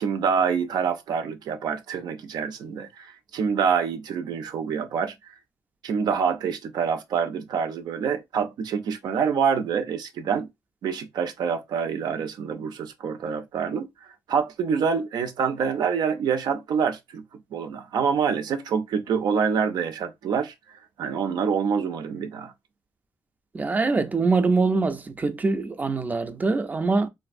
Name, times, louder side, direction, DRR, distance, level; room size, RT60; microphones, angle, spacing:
voice 1, 0.0-5.1 5.8-10.5 10.8-13.9 14.3-17.2 17.5-22.5, right 6 dB, 90° right, 0.4 m, -26 dB
voice 2, 23.5-27.1, right 3 dB, 25° right, 0.4 m, -23 dB
3.3 x 2.5 x 2.4 m
wide cardioid pair, 155°, 7 cm